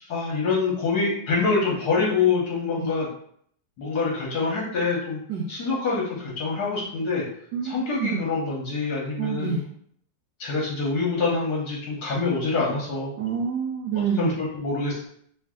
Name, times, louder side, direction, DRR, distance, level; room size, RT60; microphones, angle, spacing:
voice 1, 0.1-3.1 3.8-5.2 5.5-7.2 7.6-9.6 10.4-13.2 14.2-15.1, left 4 dB, 60° left, -4 dB, 1.3 m, -25 dB
voice 2, 7.5-8.2 9.2-9.6 13.2-14.4, right 6 dB, 75° right, 0 dB, 1.0 m, -27 dB
3.2 x 2.6 x 3.6 m, 0.64 s
omnidirectional pair, 2.2 m